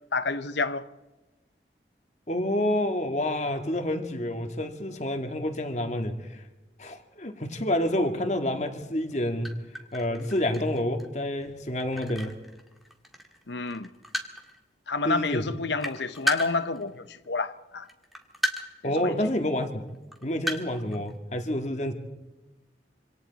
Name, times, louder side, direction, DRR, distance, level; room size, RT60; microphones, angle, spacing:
voice 1, 0.1-0.9 13.5-13.9 14.9-17.9 18.8-19.2, left 3 dB, 75° left, 0.9 m, -29 dB
voice 2, 2.3-6.4 6.8-9.6 9.9-12.4 15.0-15.4 18.8-19.8 20.2-21.9, left 1 dB, 40° left, 1.9 m, -28 dB
sound 1, 9.1-9.2 9.4-13.4 13.7-14.6 15.2-15.3 15.5-17.3 17.9-18.9 19.2-19.3 19.9-21.1, equal, ahead, 1.8 m, -34 dB
26.5 x 26.0 x 4.1 m
head